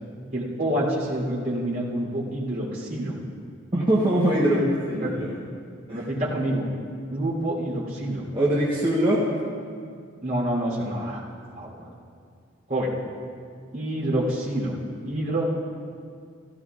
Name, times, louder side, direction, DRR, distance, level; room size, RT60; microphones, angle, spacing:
voice 1, 0.3-3.2 5.0-5.1 5.9-6.7 7.1-8.3 10.2-11.2 11.5-11.9 12.7-12.9 13.7-14.7 15.1-15.5, right 1 dB, 45° right, -4 dB, 3.2 m, -27 dB
voice 2, 3.7-5.4 5.9-6.1 8.3-9.3, right 1 dB, 20° right, -6 dB, 1.1 m, -22 dB
17.0 x 15.0 x 2.5 m, 2.2 s
head